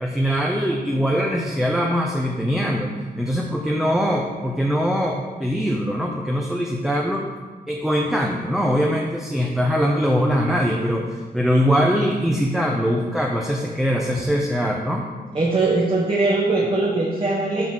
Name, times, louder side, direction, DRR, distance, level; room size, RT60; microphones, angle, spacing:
voice 1, 0.0-7.3 7.7-15.1, equal, ahead, -1 dB, 0.7 m, -22 dB
voice 2, 15.3-17.7, right 2 dB, 35° right, -4 dB, 1.3 m, -21 dB
12.5 x 4.1 x 7.3 m, 1.4 s
wide cardioid pair, 165°, 16 cm